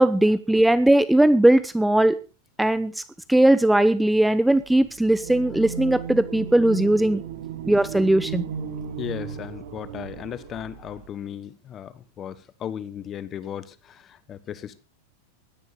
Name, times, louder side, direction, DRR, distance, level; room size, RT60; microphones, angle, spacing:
voice 1, 0.0-2.2 2.6-3.0 3.3-7.2 7.6-8.4, right 1 dB, 5° right, 0.8 m, -19 dB
sound 1, 5.1-11.1, right 7 dB, 65° right, 3.6 m, -35 dB
voice 2, 9.0-14.8, left 9 dB, 30° left, 1.3 m, -36 dB
17.0 x 12.0 x 5.1 m
hypercardioid pair, 125°, 0 cm